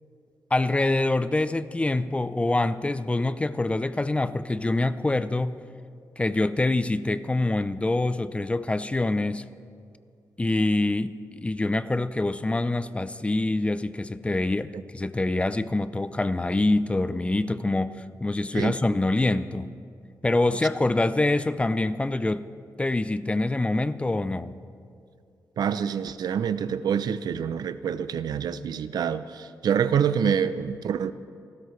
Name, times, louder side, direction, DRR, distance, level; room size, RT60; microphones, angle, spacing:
voice 1, 0.5-5.6 6.2-9.5 10.4-19.7 20.2-22.5 22.8-24.5, left 2 dB, 15° left, 14 dB, 0.5 m, -25 dB
voice 2, 25.6-31.1, right 7 dB, 80° right, 13 dB, 0.5 m, -26 dB
29.0 x 13.0 x 3.2 m, 2.4 s
wide cardioid pair, 100°, 7 cm